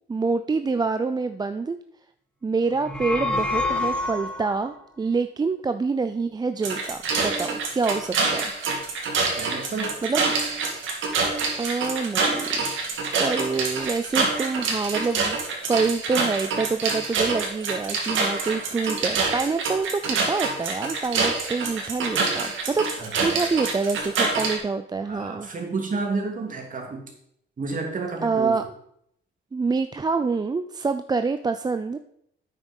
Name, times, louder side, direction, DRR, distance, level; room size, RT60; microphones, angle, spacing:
voice 1, 0.1-1.8 2.4-8.5 10.0-10.3 11.6-12.5 13.2-15.4 15.7-25.5 28.2-28.6 29.5-32.0, right 4 dB, 20° right, 9 dB, 0.4 m, -26 dB
sound 1, 2.7-4.6, left 2 dB, 5° left, 1.6 m, -27 dB
sound 2, 6.6-24.6, right 4 dB, 75° right, 2.4 m, -26 dB
voice 2, 9.4-9.9 23.0-23.1 25.1-27.0 27.6-28.6, right 3 dB, 40° right, 1 dB, 2.7 m, -30 dB
8.9 x 6.2 x 5.4 m, 0.73 s
cardioid pair, 90°, 20 cm